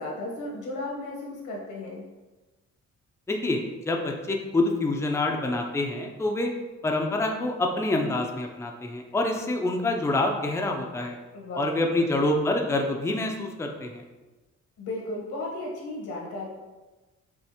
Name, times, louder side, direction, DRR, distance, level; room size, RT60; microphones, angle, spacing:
voice 1, 0.0-2.0 11.3-12.0 14.8-16.5, left 2 dB, 80° left, -2 dB, 1.3 m, -35 dB
voice 2, 3.3-6.5 6.8-11.2 11.6-14.0, left 2 dB, 10° left, 2 dB, 0.5 m, -26 dB
5.5 x 2.5 x 2.9 m, 1.2 s
cardioid pair, 90°, 30 cm